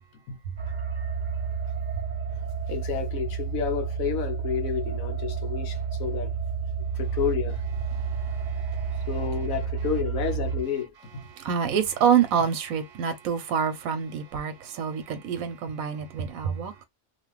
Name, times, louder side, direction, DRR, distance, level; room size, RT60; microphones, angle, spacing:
sound 1, 0.6-10.6, right 6 dB, 45° right, 0.7 m, -30 dB
voice 1, 2.7-6.3 6.9-7.6 9.1-11.2, left 7 dB, 80° left, 1.2 m, -30 dB
voice 2, 7.9-9.1 11.3-16.8, right 7 dB, 85° right, 1.1 m, -27 dB
2.8 x 2.4 x 3.0 m
omnidirectional pair, 1.4 m